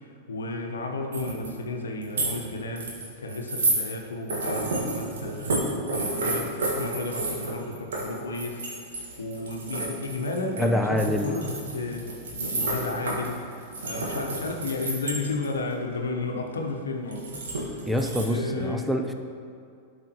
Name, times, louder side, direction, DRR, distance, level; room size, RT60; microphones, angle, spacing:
voice 1, 0.3-8.6 9.2-13.4 13.8-17.4 17.7-17.9 18.2-18.9, left 2 dB, 80° left, 2 dB, 0.9 m, -33 dB
sound 1, 1.1-1.5 1.9-2.3 2.8-3.8 4.3-10.7 11.0-15.5 17.1-18.2, right 2 dB, 70° right, 1.7 m, -30 dB
voice 2, 10.6-11.3 17.9-19.1, left 1 dB, ahead, 4 dB, 0.5 m, -25 dB
12.0 x 5.0 x 3.0 m, 2.4 s
figure-of-eight pair, 95°, 0 cm